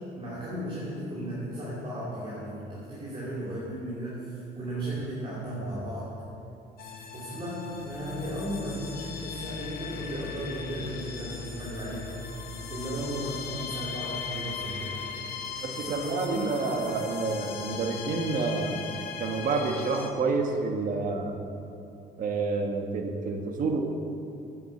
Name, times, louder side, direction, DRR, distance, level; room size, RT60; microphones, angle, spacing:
voice 1, 0.2-6.1 7.1-12.1 12.7-15.0 15.7-16.6, right 1 dB, 30° right, -7 dB, 2.8 m, -35 dB
sound 1, 6.8-20.1, left 6 dB, 65° left, 1.5 m, -38 dB
voice 2, 15.6-21.4 22.2-23.8, right 4 dB, 55° right, 3 dB, 1.4 m, -29 dB
9.3 x 7.7 x 7.8 m, 2.7 s
cardioid pair, 110°, 17 cm